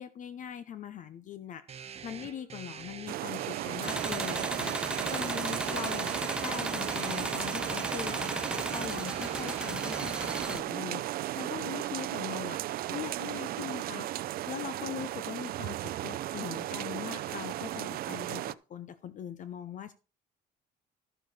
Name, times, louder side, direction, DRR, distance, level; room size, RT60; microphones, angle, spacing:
voice 1, 0.0-12.6 12.9-14.1 14.5-19.9, left 9 dB, 50° left, 13 dB, 0.6 m, -41 dB
sound 1, 1.7-10.4, right 8 dB, 40° right, 0.8 m, -46 dB
sound 2, 3.1-18.5, right 14 dB, 60° right, 0.4 m, -35 dB
sound 3, 3.8-10.6, right 2 dB, 5° right, 0.4 m, -35 dB
12.0 x 6.7 x 4.1 m, 0.35 s
cardioid pair, 110°, 17 cm